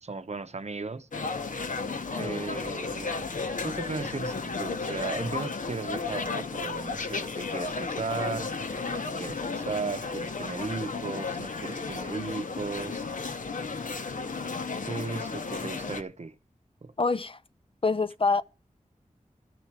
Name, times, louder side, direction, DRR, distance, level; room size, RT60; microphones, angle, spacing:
voice 1, 0.0-1.1 2.1-3.3 3.6-8.5 8.9-13.0 14.8-16.3 16.8-16.9, right 4 dB, 55° right, 0.7 m, -36 dB
sound 1, 1.1-16.0, left 4 dB, 75° left, 0.9 m, -33 dB
voice 2, 17.0-17.4 17.8-18.4, left 4 dB, 40° left, 0.5 m, -26 dB
12.5 x 4.6 x 8.6 m
wide cardioid pair, 80°, 14 cm